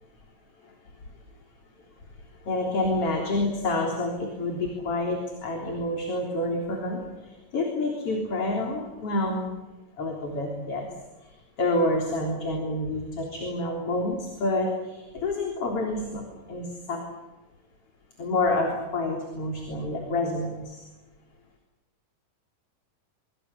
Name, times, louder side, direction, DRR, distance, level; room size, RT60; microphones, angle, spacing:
voice 1, 2.5-7.0 7.5-9.5 10.0-10.9 11.6-17.0 18.2-20.8, left 2 dB, 45° left, 1 dB, 4.4 m, -28 dB
26.5 x 24.0 x 7.1 m, 1.1 s
omnidirectional pair, 3.8 m